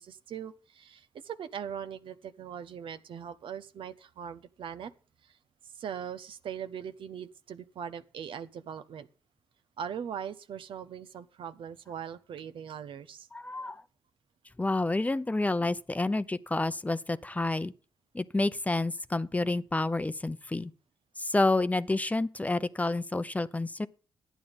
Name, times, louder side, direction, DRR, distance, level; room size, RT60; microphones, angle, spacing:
voice 1, 0.0-4.9 5.2-5.4 5.6-9.1 9.8-13.3 15.6-15.7, right 8 dB, 75° right, 0.9 m, -40 dB
voice 2, 13.3-13.8 14.6-17.7 18.1-20.7 21.2-23.9, left 2 dB, 15° left, 0.6 m, -29 dB
11.5 x 9.3 x 5.3 m
cardioid pair, 70°, 9 cm